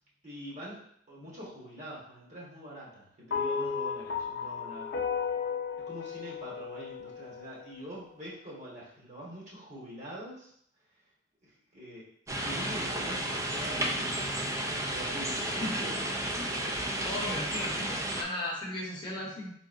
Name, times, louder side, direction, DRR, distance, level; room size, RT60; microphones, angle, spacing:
voice 1, 0.2-0.8 1.1-4.9 5.9-10.5 11.4-12.0 12.4-14.3 14.7-15.9, equal, 40° right, -6 dB, 1.3 m, -44 dB
sound 1, 3.3-7.7, left 6 dB, 60° left, 0.5 m, -34 dB
sound 2, 12.3-18.2, right 1 dB, 15° right, 0.4 m, -32 dB
voice 2, 17.0-19.5, left 1 dB, 25° left, -3 dB, 0.8 m, -36 dB
3.9 x 3.7 x 2.5 m, 0.66 s
head